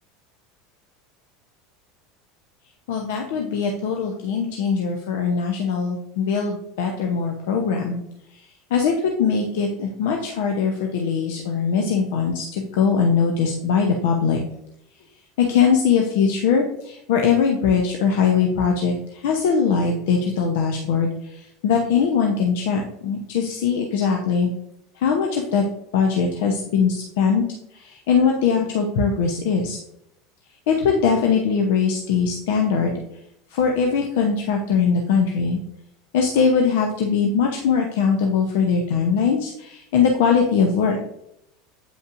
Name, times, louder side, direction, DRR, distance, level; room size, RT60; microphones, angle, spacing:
voice 1, 2.9-8.0 8.7-8.9 9.2-14.4 15.5-24.5 25.0-25.7 25.9-27.4 27.7-29.8 30.7-33.0 33.5-35.6 36.1-41.0, left 6 dB, 65° left, 2 dB, 0.7 m, -21 dB
8.1 x 5.2 x 2.5 m, 0.79 s
hypercardioid pair, 80°, 0 cm